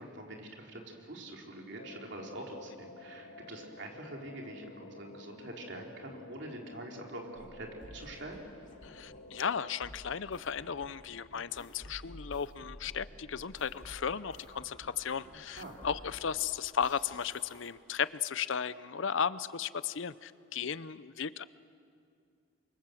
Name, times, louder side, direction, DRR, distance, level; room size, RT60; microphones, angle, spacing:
voice 1, 0.0-8.4 15.5-15.8, right 1 dB, 55° right, 1 dB, 3.6 m, -45 dB
sound 1, 1.8-9.7, left 2 dB, 85° left, 1.9 m, -52 dB
sound 2, 7.3-17.7, left 1 dB, 35° left, 2.3 m, -52 dB
voice 2, 8.8-21.4, left 7 dB, 65° left, 16 dB, 0.6 m, -35 dB
27.5 x 24.5 x 7.7 m, 2.3 s
head